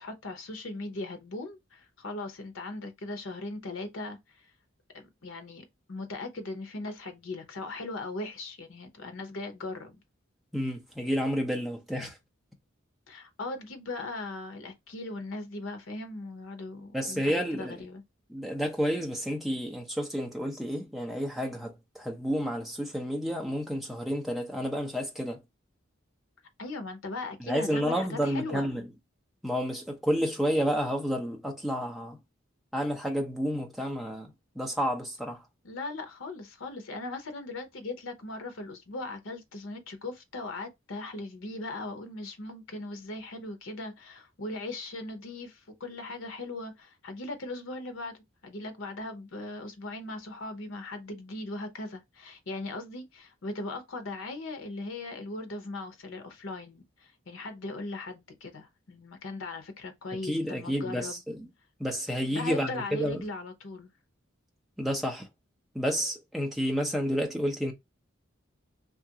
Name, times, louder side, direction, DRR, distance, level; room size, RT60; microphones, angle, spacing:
voice 1, 0.0-4.5 4.9-10.0 13.1-18.0 26.6-28.7 35.6-48.2 48.4-61.2 62.3-63.9, left 2 dB, 75° left, 0.7 m, -39 dB
voice 2, 10.5-12.2 16.9-17.7 18.3-25.4 27.4-28.9 29.4-32.2 32.7-35.4 60.1-61.5 61.8-63.2 64.8-65.3 65.7-67.7, equal, ahead, 0.6 m, -30 dB
2.8 x 2.4 x 2.7 m
head